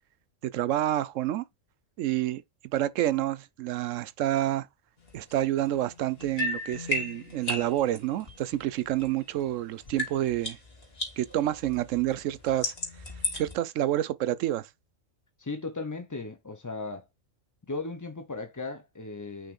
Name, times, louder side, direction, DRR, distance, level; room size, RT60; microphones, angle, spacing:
voice 1, 0.4-1.4 2.0-2.4 2.7-4.7 5.1-10.6 11.2-12.7 13.3-14.7, right 13 dB, 80° right, 0.9 m, -28 dB
sound 1, 5.1-9.5 9.8-13.6, left 2 dB, 50° left, 2.6 m, -36 dB
voice 2, 15.4-17.0 17.7-19.5, left 3 dB, 20° left, 0.5 m, -36 dB
5.8 x 3.5 x 5.2 m
omnidirectional pair, 1.3 m